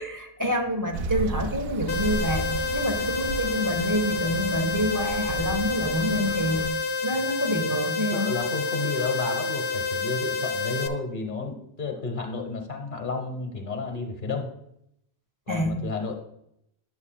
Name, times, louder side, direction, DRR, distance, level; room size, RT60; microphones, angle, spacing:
voice 1, 0.0-6.7 7.0-8.3 15.5-15.9, equal, 20° right, 4 dB, 0.8 m, -27 dB
sound 1, 0.9-6.7, right 3 dB, 65° right, 0.7 m, -34 dB
sound 2, 1.9-10.9, left 4 dB, 80° left, 0.9 m, -29 dB
voice 2, 8.1-14.5 15.5-16.2, left 4 dB, 50° left, 4 dB, 1.3 m, -31 dB
9.6 x 8.0 x 2.2 m, 0.76 s
omnidirectional pair, 1.1 m